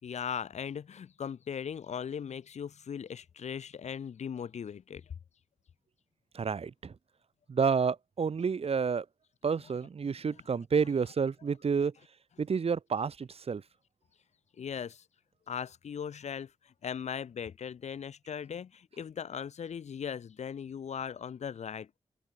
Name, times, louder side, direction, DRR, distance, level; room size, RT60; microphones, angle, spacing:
voice 1, 0.0-5.1 10.0-10.1 14.6-15.0 15.5-22.0, left 7 dB, 80° left, 4.2 m, -39 dB
voice 2, 6.3-6.9 7.5-9.0 9.4-11.9 12.4-13.6, right 5 dB, 60° right, 1.5 m, -29 dB
cardioid pair, 50°, 11 cm